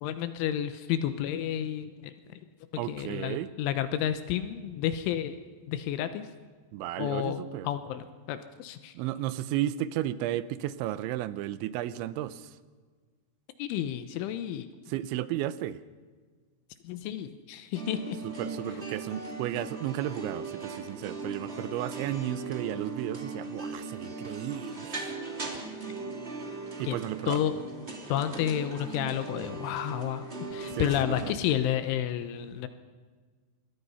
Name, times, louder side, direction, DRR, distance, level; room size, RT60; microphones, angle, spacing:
voice 1, 0.0-2.4 2.7-5.4 5.7-6.3 7.0-8.9 13.6-14.7 16.8-18.2 26.8-27.0 27.3-27.5 28.1-30.2 30.5-32.7, left 10 dB, 80° left, 10 dB, 3.4 m, -31 dB
voice 2, 2.8-3.5 6.7-7.7 8.9-12.6 14.9-15.8 18.2-25.2 26.8-27.4 30.7-31.3, right 13 dB, 80° right, 15 dB, 3.0 m, -34 dB
sound 1, 17.7-31.3, right 3 dB, 20° right, 1.8 m, -39 dB
26.0 x 22.0 x 5.7 m, 1.5 s
omnidirectional pair, 5.5 m